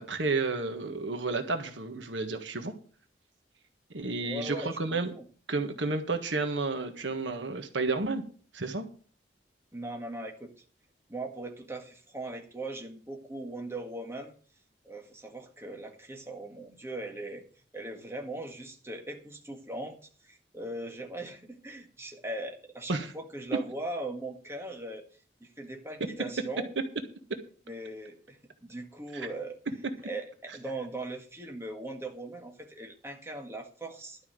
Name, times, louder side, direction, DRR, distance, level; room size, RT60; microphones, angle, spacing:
voice 1, 0.0-2.7 3.9-5.1 5.5-8.2 8.5-8.8 22.9-23.1 29.1-29.3, right 3 dB, 85° right, 6 dB, 1.6 m, -31 dB
voice 2, 4.2-5.2 9.7-10.6 11.1-14.3 14.8-17.4 17.7-20.0 20.2-25.0 25.4-26.7 27.7-29.6 30.0-34.2, right 2 dB, 15° right, 2 dB, 1.8 m, -39 dB
12.0 x 5.6 x 7.9 m, 0.42 s
head